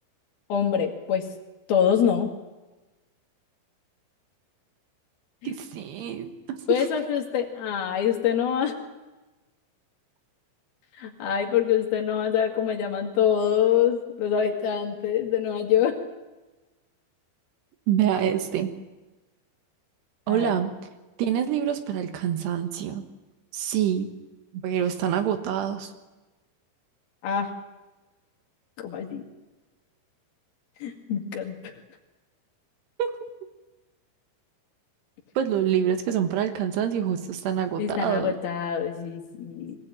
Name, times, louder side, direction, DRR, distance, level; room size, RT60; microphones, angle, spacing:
voice 1, 0.5-1.3 1.7-2.3 5.4-5.5 6.7-8.7 11.0-16.0 20.3-20.5 27.2-27.5 28.8-29.2 30.8-31.6 37.8-39.8, left 8 dB, 60° left, 3 dB, 3.7 m, -25 dB
voice 2, 5.4-6.3 6.7-6.9 17.9-18.8 20.3-20.7 21.2-23.0 23.5-24.1 24.5-25.9 33.0-33.1 35.4-38.3, right 9 dB, 70° right, 8 dB, 3.3 m, -26 dB
23.5 x 16.0 x 8.9 m, 1.1 s
omnidirectional pair, 5.2 m